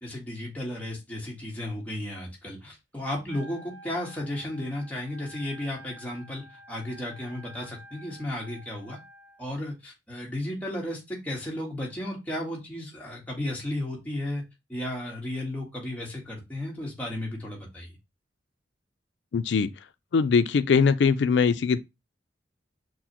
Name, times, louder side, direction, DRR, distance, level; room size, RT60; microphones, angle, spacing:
voice 1, 0.0-9.0 9.4-14.4 14.7-17.9, left 1 dB, 10° left, 1.3 m, -34 dB
Wind instrument woodwind instrument, 3.3-9.4, right 1 dB, 80° right, 0.8 m, -49 dB
voice 2, 19.3-19.7 20.1-21.8, left 5 dB, 70° left, 0.4 m, -21 dB
6.0 x 2.1 x 2.9 m
head